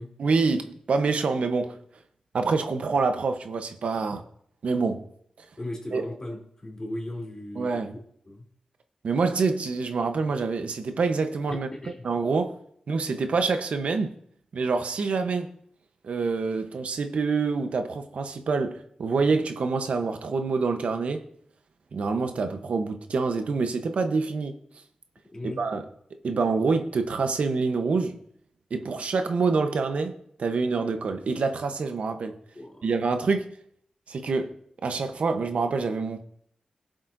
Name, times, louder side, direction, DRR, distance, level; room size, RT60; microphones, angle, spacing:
voice 1, 0.2-1.8 2.3-4.2 4.6-5.0 5.9-6.0 7.6-7.9 9.0-11.7 12.0-12.6 12.9-14.1 14.5-15.5 16.0-21.2 21.9-24.5 25.4-25.9 26.2-28.2 28.7-30.1 30.4-32.4 32.8-33.5 34.1-34.5 34.8-36.2, right 4 dB, 75° right, 0.9 m, -26 dB
voice 2, 5.6-7.8 8.3-8.4 11.7-12.0 25.3-25.6 32.5-32.8, left 1 dB, 30° left, 3.2 m, -37 dB
18.5 x 7.7 x 2.7 m
wide cardioid pair, 75°, 2 cm